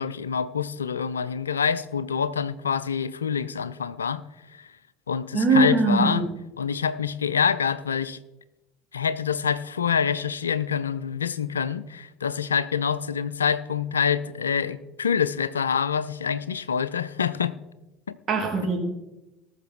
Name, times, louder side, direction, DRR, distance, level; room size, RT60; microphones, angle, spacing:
voice 1, 0.0-4.2 4.6-4.7 5.1-6.3 6.6-8.2 8.9-17.6 18.1-18.2, left 7 dB, 75° left, 0.5 m, -26 dB
voice 2, 5.3-6.3 18.3-18.8, right 3 dB, 35° right, 3.1 m, -21 dB
19.0 x 6.6 x 4.5 m
figure-of-eight pair, 65°, 0 cm